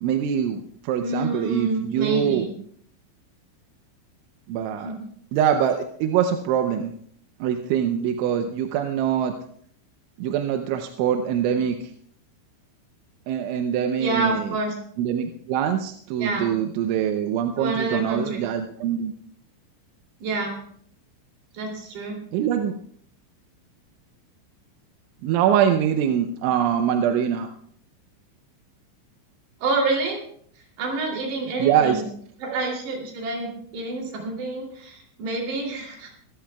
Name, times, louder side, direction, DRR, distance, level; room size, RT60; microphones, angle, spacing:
voice 1, 0.0-2.5 4.5-4.9 5.3-6.9 7.4-9.3 10.2-11.9 13.3-14.6 15.0-19.1 22.3-22.8 25.2-27.5 31.6-32.0 32.5-32.6, right 9 dB, 80° right, 5 dB, 3.0 m, -23 dB
voice 2, 1.0-2.5 4.8-5.0 14.0-14.7 16.2-16.5 17.6-18.4 20.2-20.5 21.5-22.2 29.6-30.2 30.8-32.1 32.4-36.1, right 2 dB, 60° right, 0 dB, 4.8 m, -28 dB
24.5 x 13.5 x 2.3 m, 0.63 s
omnidirectional pair, 5.9 m